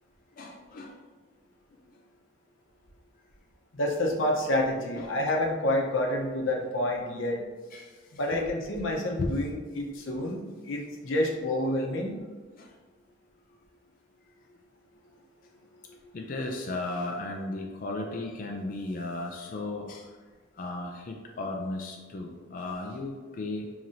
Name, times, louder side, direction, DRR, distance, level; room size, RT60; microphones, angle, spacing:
voice 1, 0.4-0.9 4.9-5.2 7.7-8.0 8.3-8.5 9.2-9.3 12.6-12.7 16.1-20.1 20.6-23.7, left 2 dB, 45° left, 1 dB, 0.4 m, -35 dB
voice 2, 3.7-7.4 8.1-12.2 15.9-16.0, left 1 dB, 90° left, 0 dB, 0.8 m, -28 dB
5.6 x 3.0 x 2.5 m, 1.4 s
head